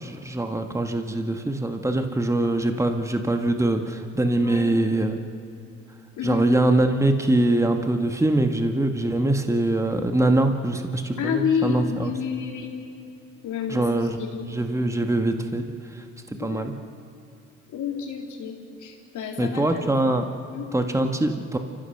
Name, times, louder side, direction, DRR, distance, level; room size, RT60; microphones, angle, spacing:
voice 1, 0.0-5.2 6.2-12.1 13.7-14.2 14.4-16.7 19.4-20.2 20.7-21.6, right 1 dB, 10° right, 5 dB, 1.8 m, -23 dB
voice 2, 4.4-4.7 6.2-6.4 11.2-12.7 13.4-14.5 16.4-16.6 17.7-20.1 20.5-20.7, left 7 dB, 75° left, 1 dB, 3.8 m, -30 dB
28.5 x 15.5 x 6.7 m, 2.8 s
cardioid pair, 90°, 30 cm